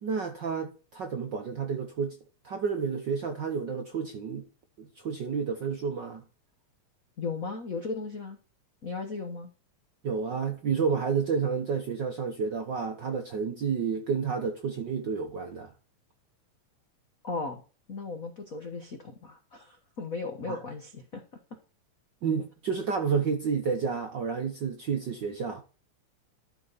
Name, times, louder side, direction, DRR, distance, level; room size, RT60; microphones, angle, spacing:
voice 1, 0.0-2.2 2.4-4.4 4.8-6.2 10.0-15.7 20.5-20.6 22.2-25.6, right 6 dB, 65° right, 1.1 m, -30 dB
voice 2, 7.2-8.4 8.8-9.5 17.2-17.6 17.9-21.2, left 4 dB, 75° left, 0.7 m, -36 dB
12.0 x 5.2 x 4.1 m
omnidirectional pair, 3.4 m